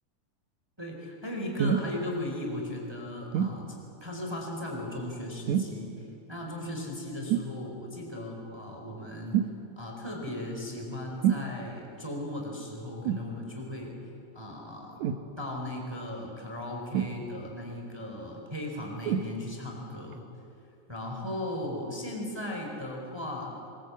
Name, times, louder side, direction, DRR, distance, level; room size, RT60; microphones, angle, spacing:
voice 1, 0.8-5.9 6.3-9.4 9.8-14.0 14.3-15.0 15.4-20.3 20.9-23.5, left 1 dB, 5° right, 0 dB, 3.9 m, -37 dB
sound 1, 1.6-1.9 3.3-3.6 5.5-5.8 7.3-7.5 9.3-9.6 11.2-11.5 13.0-13.3 15.0-15.3 16.9-17.5 19.0-19.3 20.1-20.2, right 9 dB, 65° right, 2.3 m, -27 dB
27.0 x 21.5 x 8.5 m, 2.7 s
omnidirectional pair, 3.7 m